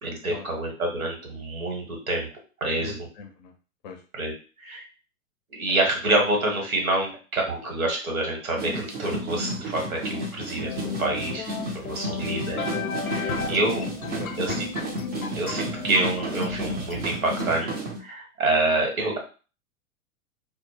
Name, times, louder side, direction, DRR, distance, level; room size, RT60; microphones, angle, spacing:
voice 1, 0.0-2.3 2.6-3.1 4.1-4.8 5.5-12.6 13.0-13.9 14.4-14.7 15.4-17.7 18.0-19.2, right 2 dB, 80° right, 1 dB, 1.1 m, -27 dB
voice 2, 2.8-3.5 3.8-4.0 10.4-10.6 13.4-13.6 14.1-14.5, left 5 dB, 35° left, 4 dB, 0.5 m, -40 dB
sound 1, 8.6-18.0, right 1 dB, 25° right, 0.5 m, -32 dB
sound 2, 10.7-17.5, left 6 dB, 85° left, 0.5 m, -35 dB
2.1 x 2.0 x 3.2 m, 0.36 s
figure-of-eight pair, 105°, 41 cm